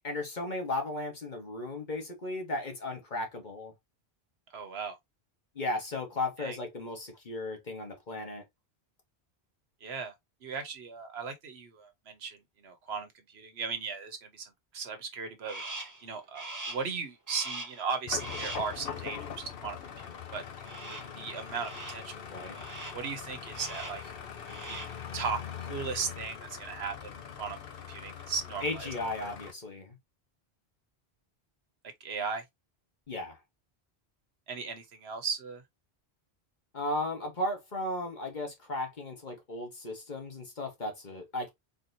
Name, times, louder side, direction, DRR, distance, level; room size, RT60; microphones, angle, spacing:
voice 1, 0.0-3.7 5.5-8.4 22.3-22.6 28.6-30.0 33.1-33.4 36.7-41.5, left 2 dB, 50° left, 1.4 m, -35 dB
voice 2, 4.5-5.0 6.4-6.6 9.8-10.1 10.4-20.4 20.9-22.5 22.9-24.1 24.7-27.6 27.9-28.9 29.2-29.3 32.0-32.4 34.5-35.6, right 5 dB, 85° right, 1.2 m, -37 dB
Crow, 15.5-16.0 16.3-16.9 17.3-17.8 18.2-18.7 20.6-21.2 21.5-22.1 22.5-23.1 23.5-24.1 24.4-25.0, right 2 dB, 20° right, 0.7 m, -42 dB
sound 1, 18.1-29.5, left 8 dB, 65° left, 1.0 m, -42 dB
4.0 x 2.9 x 2.6 m
omnidirectional pair, 1.0 m